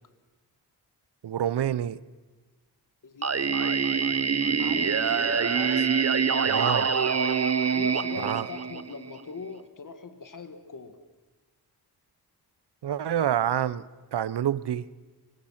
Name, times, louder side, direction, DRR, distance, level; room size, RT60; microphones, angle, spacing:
voice 1, 1.2-2.0 5.5-5.9 6.4-6.9 8.2-8.5 12.8-13.8 14.1-14.8, right 10 dB, 85° right, 0.7 m, -27 dB
voice 2, 3.0-4.2 4.6-5.3 7.3-11.0, left 4 dB, 50° left, 1.9 m, -42 dB
Singing, 3.2-9.2, right 6 dB, 40° right, 0.9 m, -25 dB
25.0 x 23.5 x 5.9 m
wide cardioid pair, 105°, 40 cm